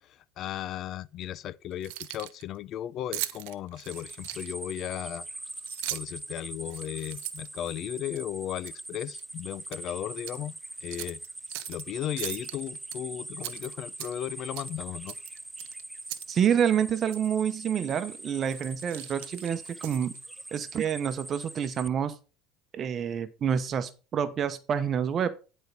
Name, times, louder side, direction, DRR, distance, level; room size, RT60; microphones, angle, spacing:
voice 1, 0.0-5.3 5.9-11.2 11.7-15.1, left 11 dB, 50° left, 0.5 m, -36 dB
Keys jangling, 1.7-2.4 3.1-4.7 5.5-6.2 6.7-8.2 8.7-8.9 9.2-9.8 10.2-10.4 10.9-11.8 12.2-13.0 13.4-14.3 14.5-14.8 15.1-16.3 16.6-16.7 17.1-17.3 17.9-18.1 18.4-20.2, right 17 dB, 75° right, 0.8 m, -39 dB
sound 1, 3.9-21.9, right 2 dB, 10° right, 0.4 m, -42 dB
voice 2, 16.3-20.1 20.5-22.2 22.7-25.4, right 8 dB, 40° right, 0.8 m, -28 dB
10.5 x 4.5 x 5.3 m
supercardioid pair, 100°, 0 cm